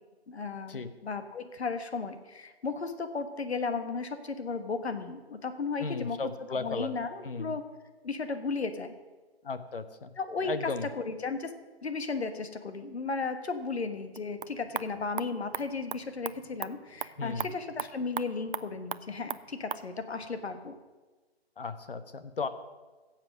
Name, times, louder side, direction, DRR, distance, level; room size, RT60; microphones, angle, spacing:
voice 1, 0.3-7.6 8.0-8.9 10.2-11.5 11.8-20.8, left 4 dB, 75° left, 9 dB, 1.4 m, -35 dB
voice 2, 5.8-6.9 7.2-7.5 9.4-10.1 10.4-10.9 17.2-17.5 21.6-22.5, left 4 dB, 55° left, 11 dB, 1.1 m, -35 dB
sound 1, 14.0-19.9, right 7 dB, 55° right, 0.5 m, -40 dB
16.0 x 7.5 x 6.2 m, 1.3 s
hypercardioid pair, 175°, 32 cm